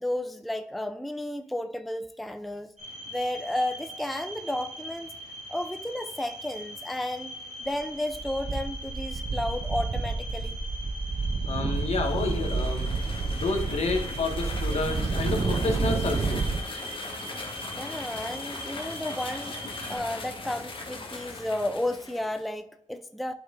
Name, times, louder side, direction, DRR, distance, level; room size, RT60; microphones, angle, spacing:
voice 1, 0.0-2.7 3.1-5.1 5.5-7.3 7.7-10.6 17.8-23.3, left 1 dB, ahead, 0.5 m, -32 dB
sound 1, 2.8-20.0, equal, 75° right, 2.6 m, -41 dB
sound 2, 7.7-7.8 8.1-16.6, right 4 dB, 40° right, 0.6 m, -30 dB
voice 2, 11.5-16.4, left 3 dB, 60° left, 1.7 m, -30 dB
sound 3, 11.7-22.5, left 2 dB, 45° left, 1.7 m, -39 dB
11.0 x 5.3 x 2.6 m
cardioid pair, 75°, 12 cm